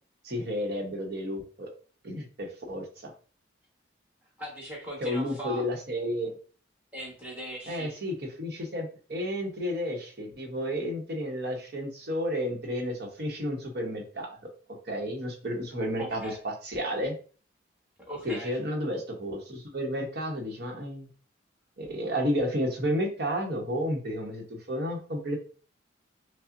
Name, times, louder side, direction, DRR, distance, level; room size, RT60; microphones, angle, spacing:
voice 1, 0.2-1.7 2.0-3.1 5.0-6.4 7.7-14.4 14.9-17.1 18.2-21.1 21.8-25.4, equal, 55° right, 2 dB, 0.9 m, -32 dB
voice 2, 4.4-5.7 6.9-8.0 16.0-16.4 18.1-18.6, right 1 dB, 5° right, -4 dB, 1.3 m, -39 dB
5.4 x 2.0 x 2.5 m, 0.39 s
head